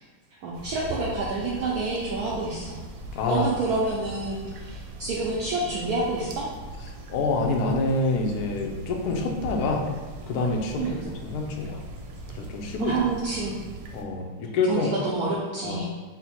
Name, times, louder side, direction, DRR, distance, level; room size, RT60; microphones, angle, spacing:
voice 1, 0.4-2.8 3.3-6.5 10.8-11.0 12.8-13.5 14.7-15.9, right 3 dB, 90° right, -5 dB, 0.8 m, -28 dB
sound 1, 0.5-14.0, right 1 dB, 75° right, 1.1 m, -40 dB
voice 2, 3.1-3.5 7.1-9.9 10.3-11.0 11.2-11.8 12.3-13.0 13.9-14.9 15.6-15.9, left 3 dB, 80° left, 2 dB, 0.8 m, -26 dB
3.9 x 2.1 x 4.3 m, 1.3 s
omnidirectional pair, 2.2 m